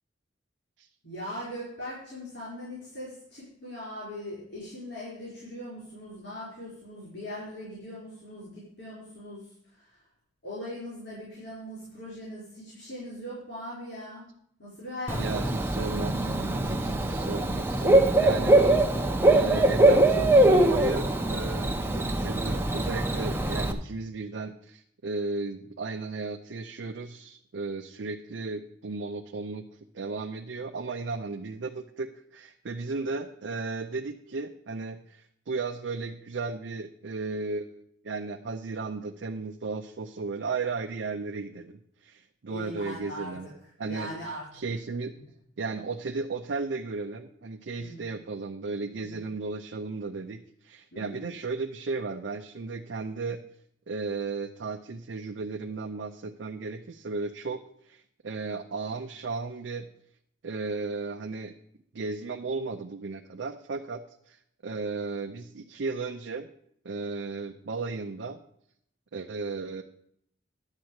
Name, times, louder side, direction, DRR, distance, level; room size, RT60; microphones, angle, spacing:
voice 1, 1.0-10.0 10.4-14.2 14.6-15.6 42.5-43.3 43.8-44.4 47.8-48.1 48.9-49.3 50.9-51.3, equal, 75° left, -8 dB, 5.0 m, -40 dB
Bird / Cricket, 15.1-23.7, right 1 dB, 15° right, 0.6 m, -22 dB
voice 2, 15.2-29.6 29.9-43.5 43.8-44.1 44.5-45.1 45.6-53.4 53.9-59.9 60.4-61.5 61.9-66.5 66.8-68.4 69.1-69.8, right 3 dB, 75° right, 4 dB, 0.5 m, -35 dB
10.5 x 4.4 x 8.0 m, 0.70 s
head